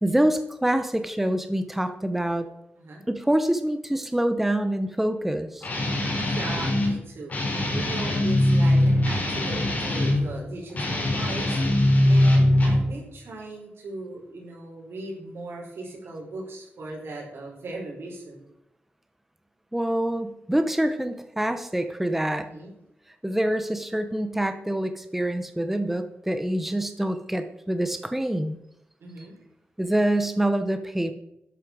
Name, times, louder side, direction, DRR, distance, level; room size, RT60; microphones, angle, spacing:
voice 1, 0.0-2.5 3.1-5.7 19.7-22.5 23.2-28.5 29.2-29.3 29.8-31.1, right 1 dB, 5° right, 8 dB, 0.8 m, -26 dB
Guitar, 5.6-6.9 7.3-10.2 10.7-12.9, left 1 dB, 40° left, 4.9 m, -22 dB
voice 2, 6.0-11.6 12.1-18.5 22.4-22.7 29.0-29.4, right 2 dB, 85° right, -1 dB, 5.5 m, -38 dB
12.5 x 11.0 x 4.8 m, 0.82 s
wide cardioid pair, 175°, 4 cm